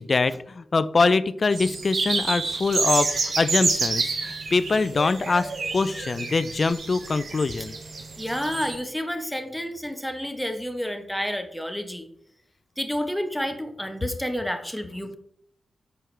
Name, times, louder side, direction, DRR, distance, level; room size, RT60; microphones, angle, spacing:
voice 1, 0.0-7.8 15.1-15.2, left 4 dB, 50° left, 15 dB, 0.3 m, -24 dB
sound 1, 1.5-8.8, right 4 dB, 65° right, 0.9 m, -29 dB
voice 2, 8.2-12.1 12.8-15.2, equal, 5° left, 6 dB, 1.0 m, -30 dB
6.2 x 4.6 x 3.3 m, 0.70 s
cardioid pair, 50°, 0 cm